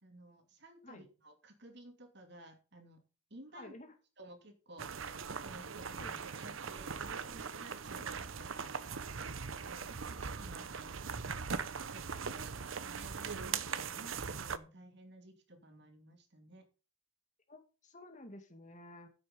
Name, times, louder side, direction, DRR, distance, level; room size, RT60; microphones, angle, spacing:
voice 1, 0.0-3.0 3.3-3.7 4.2-9.0 9.7-16.6, right 1 dB, 55° right, 6 dB, 2.6 m, -55 dB
voice 2, 3.5-3.9 5.9-6.1 8.0-8.3 9.7-9.9 12.4-12.7 17.5-19.1, left 1 dB, 35° left, 6 dB, 2.1 m, -53 dB
sound 1, 4.8-14.6, right 6 dB, 75° right, 0.8 m, -40 dB
9.8 x 7.9 x 5.2 m, 0.34 s
head